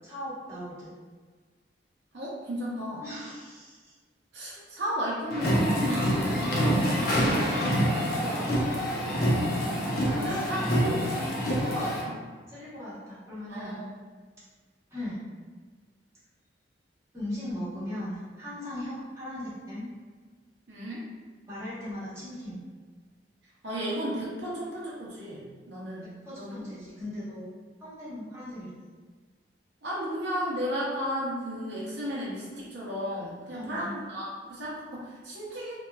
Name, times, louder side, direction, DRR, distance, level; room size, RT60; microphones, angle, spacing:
voice 1, 0.0-0.9 3.0-3.9 4.6-4.7 5.9-6.1 10.0-10.8 12.5-13.9 14.9-15.2 17.1-19.9 21.5-22.6 26.2-27.5 27.8-28.7 33.5-34.0, left 1 dB, 15° right, -11 dB, 0.9 m, -38 dB
voice 2, 2.1-3.0 4.3-6.9 8.2-9.0 9.7-11.0 11.4-12.2 13.5-13.9 20.7-21.1 23.6-26.5 29.8-35.7, equal, 70° right, -6 dB, 0.7 m, -34 dB
sound 1, 5.3-12.0, equal, 55° left, 0.6 m, -26 dB
2.8 x 2.3 x 2.2 m, 1.5 s
head